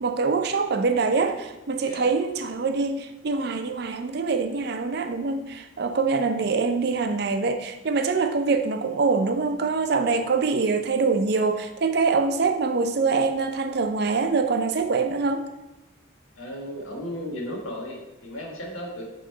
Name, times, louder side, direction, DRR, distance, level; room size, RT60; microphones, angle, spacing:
voice 1, 0.0-15.5, right 4 dB, 55° right, 8 dB, 0.5 m, -24 dB
voice 2, 16.3-19.0, equal, 85° left, 0 dB, 1.4 m, -35 dB
7.5 x 3.1 x 4.5 m, 0.98 s
head